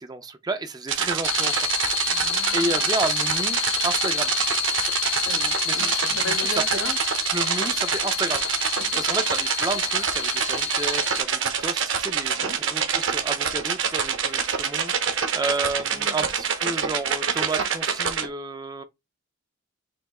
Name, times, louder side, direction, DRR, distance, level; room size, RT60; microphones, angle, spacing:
voice 1, 0.0-1.7 2.5-4.3 5.7-6.0 6.3-6.8 7.3-18.8, right 2 dB, 20° right, 0.4 m, -31 dB
sound 1, 0.9-18.3, right 7 dB, 60° right, 0.8 m, -26 dB
sound 2, 1.2-11.2, left 9 dB, 60° left, 0.7 m, -29 dB
voice 2, 2.1-2.8 5.1-7.0 8.8-9.0 12.4-12.6 15.9-16.3, left 2 dB, 85° left, 1.9 m, -36 dB
4.4 x 2.7 x 4.1 m
head